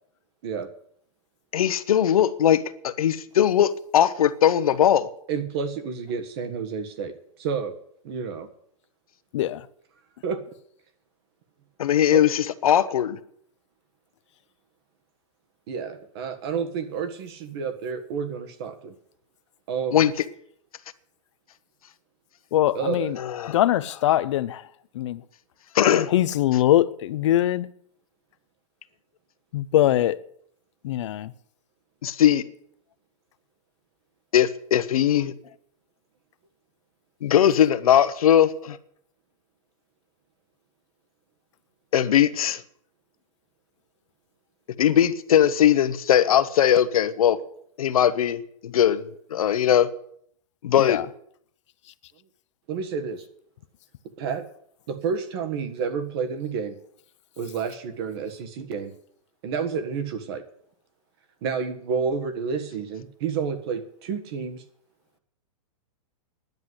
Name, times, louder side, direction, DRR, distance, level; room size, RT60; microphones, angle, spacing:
voice 1, 1.5-5.1 11.8-13.2 19.9-20.1 23.2-23.6 25.7-26.1 32.0-32.4 34.3-35.3 37.2-38.8 41.9-42.6 44.8-47.4 47.8-49.9 50.6-51.0, left 10 dB, 90° left, 1.0 m, -20 dB
voice 2, 5.3-7.8 8.0-8.5 10.2-10.4 12.1-12.2 15.7-18.9 19.7-20.0 22.7-23.1 52.7-53.3 54.2-54.5 54.9-56.8 57.4-58.9 59.4-60.4 61.4-64.6, right 6 dB, 45° right, 1.6 m, -30 dB
voice 3, 9.3-9.7 22.5-23.2 23.5-24.7 24.9-25.2 26.1-27.7 29.5-30.2 30.8-31.3 50.8-51.1, left 13 dB, 55° left, 0.6 m, -22 dB
10.5 x 8.0 x 9.8 m
supercardioid pair, 160°, 18 cm